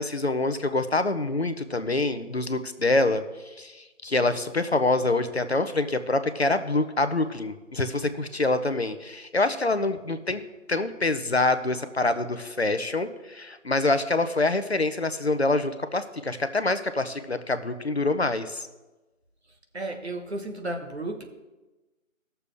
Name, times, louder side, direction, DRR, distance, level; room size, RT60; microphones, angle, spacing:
voice 1, 0.0-3.2 3.6-10.4 10.7-18.6, left 2 dB, 50° left, 10 dB, 0.8 m, -26 dB
voice 2, 19.7-21.2, right 2 dB, 50° right, 4 dB, 1.4 m, -33 dB
19.5 x 6.9 x 3.4 m, 1.1 s
figure-of-eight pair, 175°, 41 cm